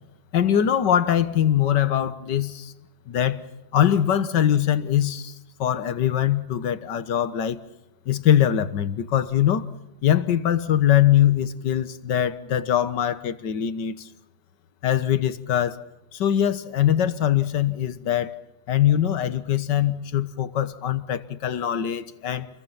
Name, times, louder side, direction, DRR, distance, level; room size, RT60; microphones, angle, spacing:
voice 1, 0.3-2.7 3.1-3.4 3.7-5.3 5.6-7.6 8.1-9.7 10.0-14.1 14.8-15.8 16.1-18.3 18.7-22.5, left 10 dB, 70° left, 13 dB, 1.8 m, -22 dB
28.5 x 22.0 x 5.7 m, 0.92 s
omnidirectional pair, 2.0 m